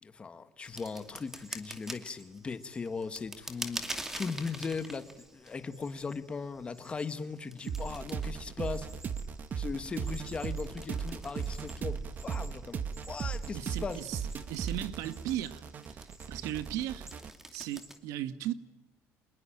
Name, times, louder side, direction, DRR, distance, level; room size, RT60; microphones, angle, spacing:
voice 1, 0.0-8.9 9.5-14.0, left 4 dB, 20° left, 1.5 m, -38 dB
sound 1, 0.6-18.0, right 1 dB, 10° right, 2.5 m, -47 dB
sound 2, 7.7-17.3, right 6 dB, 35° right, 1.3 m, -37 dB
voice 2, 13.5-14.2 14.5-15.6 16.0-17.1 17.5-18.5, right 12 dB, 80° right, 1.8 m, -36 dB
27.5 x 21.0 x 8.9 m
cardioid pair, 160°, 5 cm